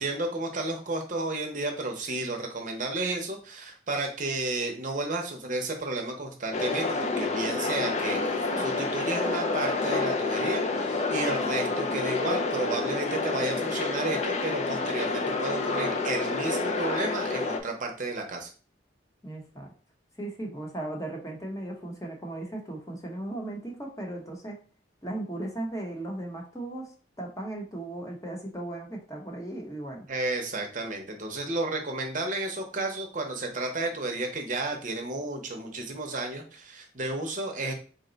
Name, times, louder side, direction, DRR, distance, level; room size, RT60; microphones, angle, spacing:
voice 1, 0.0-18.5 30.1-37.7, right 2 dB, 45° right, 3 dB, 0.7 m, -32 dB
sound 1, 6.5-17.6, left 3 dB, 40° left, 0.4 m, -28 dB
voice 2, 19.2-19.7 20.2-24.6 25.0-30.0, right 1 dB, 20° left, 0 dB, 0.9 m, -37 dB
3.9 x 2.2 x 3.8 m, 0.38 s
head